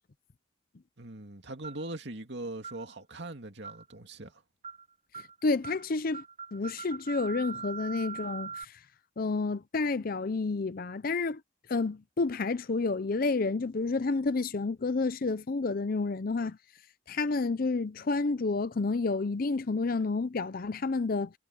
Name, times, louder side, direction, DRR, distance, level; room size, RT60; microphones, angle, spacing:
voice 1, 1.0-4.4, right 2 dB, 60° right, 2.6 m, -41 dB
sound 1, 1.6-1.9 2.6-2.8 3.6-3.9 4.6-4.8 5.1-5.3 5.6-5.8 6.1-8.6, right 5 dB, 35° right, 3.6 m, -41 dB
voice 2, 5.4-6.2 6.5-8.7 9.2-11.4 11.7-16.6 17.1-21.3, left 3 dB, 45° left, 0.6 m, -30 dB
head